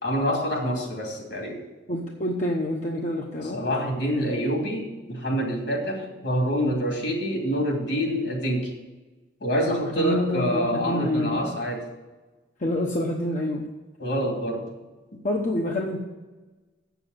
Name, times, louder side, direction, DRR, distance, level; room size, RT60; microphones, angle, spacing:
voice 1, 0.0-1.6 3.4-8.7 9.4-11.9 14.0-14.7, equal, 65° left, 1 dB, 2.6 m, -26 dB
voice 2, 1.9-3.6 10.0-11.5 12.6-13.7 15.2-16.0, left 1 dB, 45° left, 0 dB, 0.9 m, -27 dB
7.8 x 7.0 x 7.9 m, 1.2 s
head